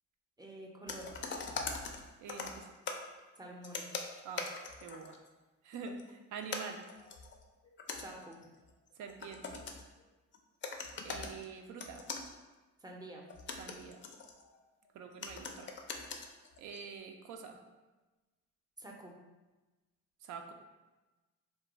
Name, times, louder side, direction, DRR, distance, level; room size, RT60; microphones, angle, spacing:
voice 1, 0.4-1.1 3.4-3.9 8.0-8.4 12.8-13.2 18.8-19.2, right 1 dB, 15° right, 0 dB, 0.5 m, -48 dB
sound 1, 0.9-3.1 3.6-5.3 5.7-6.1 6.4-10.0 10.3-10.4 10.6-11.5 11.8-12.3 13.2-14.6 15.2-16.9, left 4 dB, 40° left, 0.4 m, -42 dB
voice 2, 2.2-2.7 4.2-4.6 4.8-5.2 5.6-6.8 9.0-9.6 11.0-12.0 13.6-14.0 14.9-15.7 16.6-17.6 20.2-20.5, right 6 dB, 80° right, 5 dB, 0.5 m, -46 dB
2.3 x 2.3 x 3.9 m, 1.2 s
cardioid pair, 90°, 30 cm